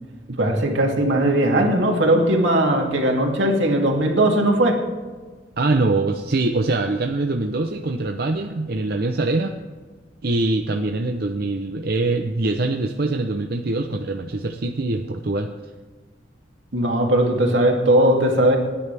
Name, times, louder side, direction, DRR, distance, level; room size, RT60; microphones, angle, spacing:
voice 1, 0.4-4.8 16.7-18.6, right 1 dB, 80° right, 0 dB, 2.7 m, -18 dB
voice 2, 5.6-9.6 10.2-15.5, right 2 dB, 55° right, 4 dB, 0.7 m, -23 dB
29.5 x 10.0 x 3.5 m, 1.4 s
head